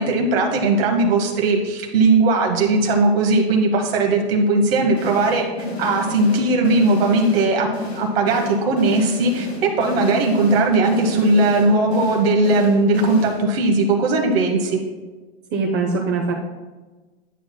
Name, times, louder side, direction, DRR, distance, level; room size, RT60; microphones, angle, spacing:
voice 1, 0.0-5.4 5.8-7.7 7.9-9.5 9.8-14.8, right 2 dB, 65° right, 1 dB, 1.3 m, -18 dB
sound 1, 4.9-13.7, left 2 dB, 75° left, 2.2 m, -30 dB
voice 2, 15.5-16.3, right 4 dB, 35° right, -1 dB, 0.9 m, -22 dB
11.0 x 5.7 x 2.2 m, 1.3 s
hypercardioid pair, 115°, 32 cm